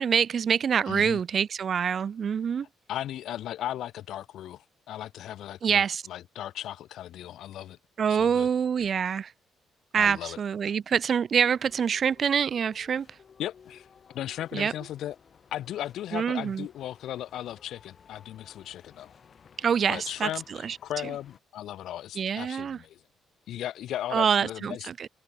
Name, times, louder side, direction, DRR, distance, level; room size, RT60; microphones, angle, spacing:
voice 1, 0.0-2.7 5.6-6.0 8.0-9.3 9.9-13.1 14.5-14.7 16.1-16.7 19.6-20.3 20.6-20.8 22.2-22.8 24.1-25.1, right 7 dB, 50° right, 0.3 m, -25 dB
voice 2, 0.9-1.2 2.9-7.8 8.1-8.5 10.0-10.7 13.4-15.2 15.5-19.1 19.9-23.0 23.5-24.9, left 12 dB, 80° left, 0.5 m, -37 dB
sound 1, 11.4-21.4, left 6 dB, 50° left, 2.4 m, -57 dB
open air
cardioid pair, 90°, 0 cm